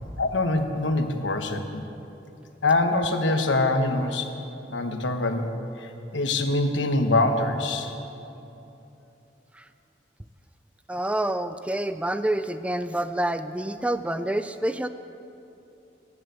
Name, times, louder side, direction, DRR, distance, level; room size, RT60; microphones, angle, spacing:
voice 1, 0.2-1.8 2.6-4.3 4.7-5.5 5.8-7.9, left 2 dB, 85° left, 6 dB, 1.2 m, -24 dB
voice 2, 10.9-14.9, right 1 dB, 5° right, 10 dB, 0.3 m, -27 dB
16.0 x 11.0 x 6.9 m, 2.9 s
head